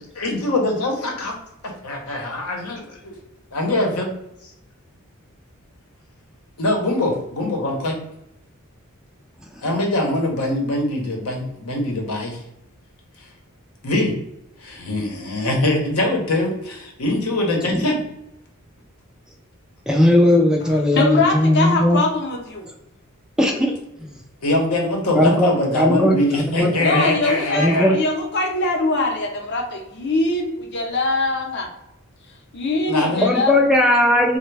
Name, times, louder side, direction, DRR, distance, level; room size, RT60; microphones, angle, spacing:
voice 1, 0.0-1.3 1.8-3.0 3.5-4.1 6.6-8.0 9.6-12.4 13.8-14.1 14.6-18.0 24.4-28.0 32.9-33.3, left 1 dB, 85° left, 1 dB, 0.8 m, -22 dB
voice 2, 19.9-22.0 23.4-23.7 24.0-24.2 25.2-25.5 25.7-27.1 27.5-28.0 33.2-34.4, left 1 dB, 5° right, 1 dB, 0.3 m, -18 dB
voice 3, 20.9-22.7 26.8-31.7 32.5-33.5, left 2 dB, 55° left, 2 dB, 0.7 m, -22 dB
3.3 x 2.1 x 3.2 m, 0.83 s
head